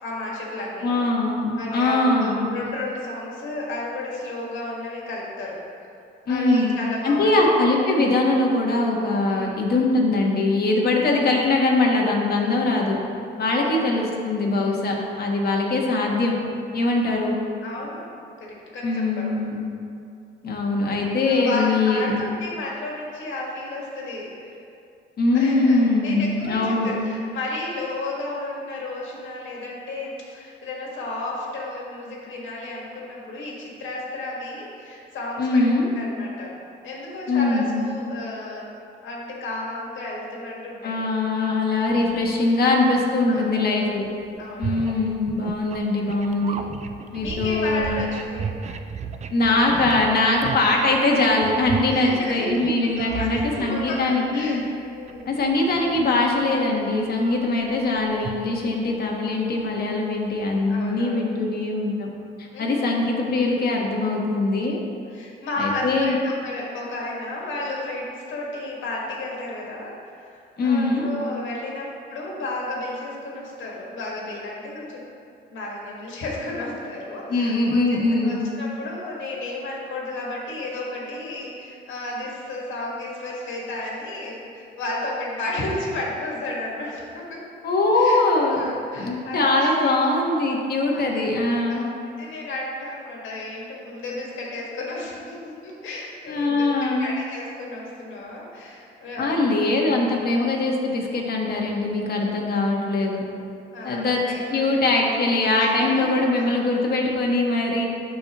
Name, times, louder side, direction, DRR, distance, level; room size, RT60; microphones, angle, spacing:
voice 1, 0.0-1.0 1.6-5.6 6.3-7.5 9.3-9.6 13.5-13.8 17.6-18.1 18.4-19.3 21.2-24.5 25.3-36.5 36.8-38.7 39.0-41.0 43.3-43.5 44.4-44.9 47.2-48.6 51.9-52.5 52.8-55.4 60.7-61.2 62.5-62.8 65.1-75.0 75.5-87.4 87.9-88.2 88.5-90.1 90.9-91.3 91.7-91.8 92.2-99.4 103.7-104.7 105.6-105.7 105.9-106.1, left 2 dB, 75° left, -3 dB, 1.8 m, -33 dB
voice 2, 0.8-2.5 6.3-6.7 7.0-13.0 13.4-16.3 16.7-17.4 18.8-19.7 20.4-22.1 25.2-27.0 35.4-35.9 37.3-37.8 40.8-44.0 44.6-46.6 47.1-48.0 49.3-54.6 55.3-62.1 62.4-64.8 65.6-66.2 70.6-71.1 77.3-78.4 87.6-88.6 88.9-91.8 96.3-97.1 99.2-103.2 103.8-104.2 104.5-107.8, left 2 dB, 50° left, -1 dB, 1.3 m, -22 dB
sound 1, 41.9-42.3 43.9-44.0 44.3-54.7 55.1-56.5 56.9-58.9, right 6 dB, 35° right, 0.4 m, -34 dB
12.0 x 4.3 x 3.0 m, 2.4 s
cardioid pair, 90°, 20 cm